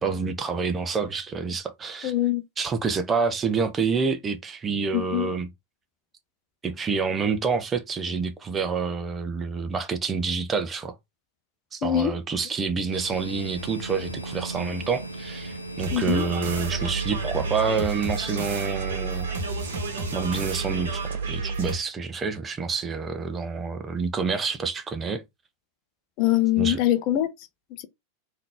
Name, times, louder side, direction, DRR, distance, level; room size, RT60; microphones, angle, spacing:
voice 1, 0.0-2.1 2.6-5.5 6.6-10.9 11.7-19.3 20.1-25.2 26.6-26.8, right 5 dB, 20° right, 0.7 m, -28 dB
voice 2, 2.0-2.4 4.9-5.3 11.8-12.1 15.9-16.3 26.2-27.3 27.8-27.9, left 13 dB, 40° left, 0.7 m, -23 dB
sound 1, 12.9-21.1, right 1 dB, 90° left, 0.7 m, -37 dB
sound 2, 15.8-21.8, right 4 dB, 60° right, 1.1 m, -30 dB
3.8 x 2.8 x 3.5 m
figure-of-eight pair, 90°, 0 cm